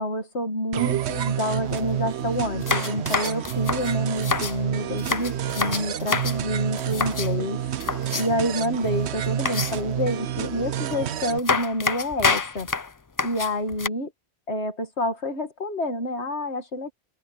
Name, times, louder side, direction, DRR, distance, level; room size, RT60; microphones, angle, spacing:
voice 1, 0.0-7.6 8.1-12.7 13.2-14.1 14.5-16.9, left 1 dB, 90° left, 2.5 m, -28 dB
sound 1, 0.7-11.4, right 10 dB, 80° right, 1.0 m, -29 dB
sound 2, 1.7-1.8 2.1-2.2 2.6-4.6 5.0-6.4 6.8-7.3 7.8-8.5 9.5-10.0 10.9-11.0 11.4-13.9, left 4 dB, 30° left, 0.3 m, -27 dB
omnidirectional pair, 1.1 m